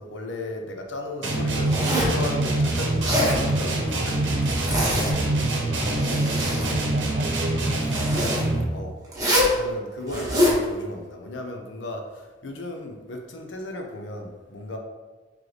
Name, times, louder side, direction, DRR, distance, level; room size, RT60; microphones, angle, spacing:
voice 1, 0.0-4.7 8.7-8.9 9.5-14.8, left 2 dB, 75° left, 3 dB, 0.6 m, -35 dB
sound 1, 1.2-8.7, right 2 dB, 75° right, 0.8 m, -25 dB
Zipper (clothing), 1.6-2.2 2.9-3.4 4.4-5.2 5.8-6.8 7.8-8.4 9.1-9.5 10.1-10.6, left 1 dB, 20° right, 1.1 m, -24 dB
voice 2, 5.8-7.8 8.6-8.7, right 1 dB, 40° right, 4 dB, 0.5 m, -37 dB
3.8 x 3.2 x 3.2 m, 1.3 s
head